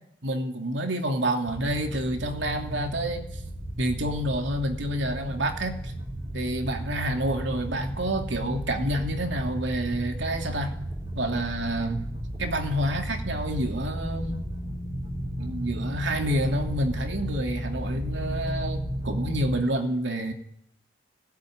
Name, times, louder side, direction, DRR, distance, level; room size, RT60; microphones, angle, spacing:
voice 1, 0.2-3.4 3.8-5.9 6.3-10.7 11.1-12.1 12.4-14.4 15.4-20.3, right 1 dB, 70° right, 4 dB, 2.8 m, -28 dB
sound 1, 1.5-19.6, equal, 25° right, 3.4 m, -34 dB
19.5 x 17.5 x 9.4 m, 0.76 s
head